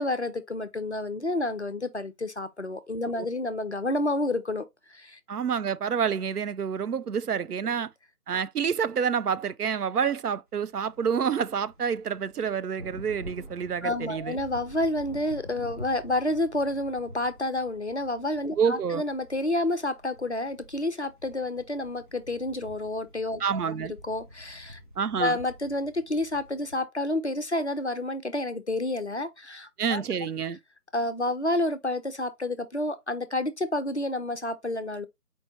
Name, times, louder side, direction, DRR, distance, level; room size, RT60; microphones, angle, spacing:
voice 1, 0.0-4.6 4.9-5.2 13.8-23.7 24.0-24.8 25.2-30.0 30.9-35.1, left 1 dB, 45° left, 0.5 m, -29 dB
voice 2, 5.3-7.9 8.3-14.4 18.6-19.0 23.4-23.9 25.0-25.4 29.8-30.6, right 7 dB, 70° right, 0.5 m, -28 dB
sound 1, 10.7-26.8, equal, 30° right, 0.8 m, -48 dB
4.5 x 3.1 x 2.7 m
figure-of-eight pair, 160°, 47 cm